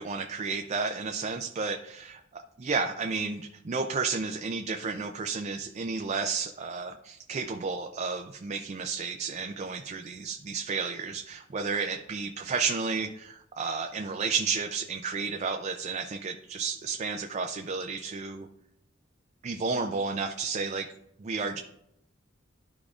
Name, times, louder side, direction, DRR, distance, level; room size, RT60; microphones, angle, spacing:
voice 1, 0.0-18.5 19.4-20.9 21.2-21.6, right 4 dB, 35° right, 5 dB, 0.4 m, -32 dB
12.5 x 4.9 x 2.4 m, 0.79 s
head